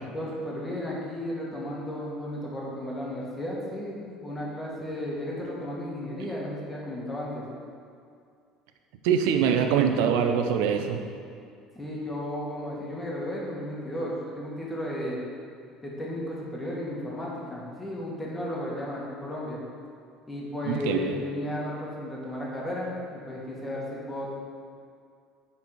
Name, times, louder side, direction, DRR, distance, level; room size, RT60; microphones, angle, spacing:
voice 1, 0.1-7.4 11.8-15.2 15.8-19.6 20.3-24.3, left 1 dB, 15° left, -5 dB, 2.0 m, -34 dB
voice 2, 9.0-11.0 20.7-21.2, right 7 dB, 80° right, 6 dB, 0.6 m, -23 dB
9.5 x 4.3 x 4.6 m, 2.3 s
supercardioid pair, 105°, 0 cm